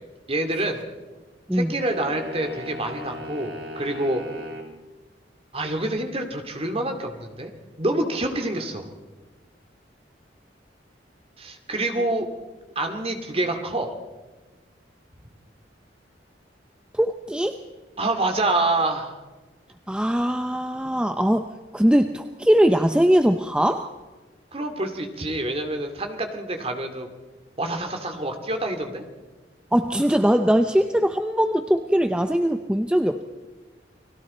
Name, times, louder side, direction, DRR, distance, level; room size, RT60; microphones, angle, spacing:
voice 1, 0.3-0.8 1.5-4.2 5.5-7.5 7.8-8.9 11.4-12.3 12.8-13.9 18.0-19.1 24.5-27.1 27.6-29.0, right 2 dB, 35° right, 5 dB, 2.4 m, -27 dB
sound 1, 1.9-4.7, left 1 dB, 70° right, 3.3 m, -36 dB
voice 2, 16.9-17.6 19.9-23.9 29.7-33.2, equal, 5° right, 7 dB, 0.6 m, -21 dB
30.0 x 21.0 x 4.3 m, 1.2 s
head